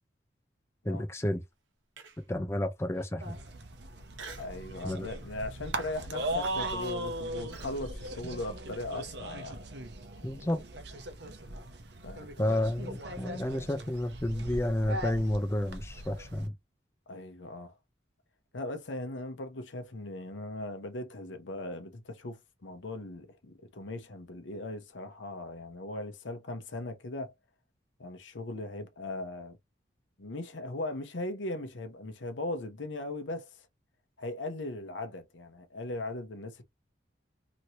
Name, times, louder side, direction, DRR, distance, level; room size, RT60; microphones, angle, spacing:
voice 1, 0.8-1.4 2.2-3.4 4.8-5.1 10.2-10.6 12.4-16.5, left 1 dB, 15° left, 0.5 m, -31 dB
Human voice, 2.0-2.4 2.9-3.0 4.1-4.6 5.0-5.3 5.7-7.8, right 4 dB, 85° right, 1.0 m, -48 dB
sound 1, 3.2-16.5, right 1 dB, 60° right, 0.7 m, -39 dB
voice 2, 4.4-9.6 12.0-12.6 17.1-17.7 18.5-27.3 28.0-29.6 30.2-33.7 34.2-36.6, left 2 dB, 80° left, 0.8 m, -39 dB
3.0 x 2.7 x 2.8 m
head